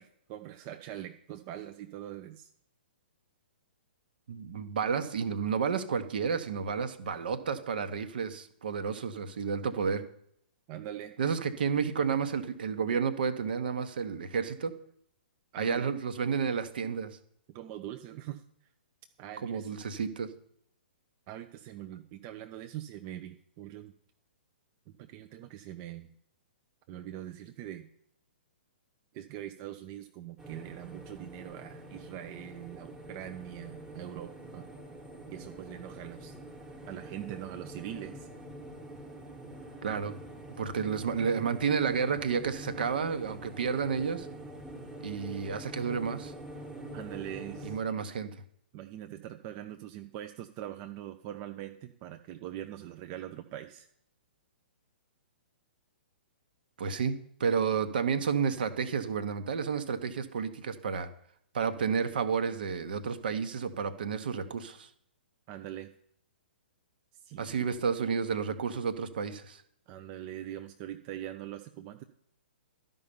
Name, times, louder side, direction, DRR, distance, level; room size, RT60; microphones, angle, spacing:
voice 1, 0.0-2.5 10.7-11.2 15.5-15.9 17.5-18.4 19.2-19.7 21.3-23.9 25.0-26.1 26.9-27.9 29.1-34.7 35.3-36.4 36.9-38.3 46.9-47.8 48.7-53.9 65.5-65.9 67.1-67.6 69.9-72.0, right 12 dB, 30° right, 7 dB, 0.5 m, -42 dB
voice 2, 4.3-10.0 11.2-14.7 15.6-17.2 19.4-20.3 39.8-40.1 40.6-44.3 45.0-46.3 47.6-48.3 56.8-61.1 61.5-64.9 67.4-69.6, right 6 dB, 55° right, 11 dB, 1.0 m, -31 dB
sound 1, 30.4-47.8, right 1 dB, 10° right, 1.3 m, -45 dB
12.0 x 5.4 x 7.0 m, 0.68 s
figure-of-eight pair, 115°, 6 cm